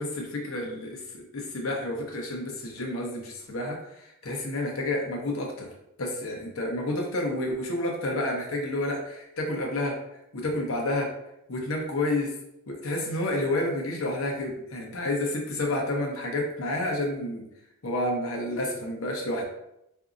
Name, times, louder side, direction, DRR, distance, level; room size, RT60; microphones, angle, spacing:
voice 1, 0.0-5.7 6.0-10.0 10.3-11.1 11.5-12.3 12.7-17.4 17.8-19.4, left 1 dB, 70° left, 0 dB, 0.8 m, -30 dB
4.7 x 2.7 x 2.5 m, 0.83 s
head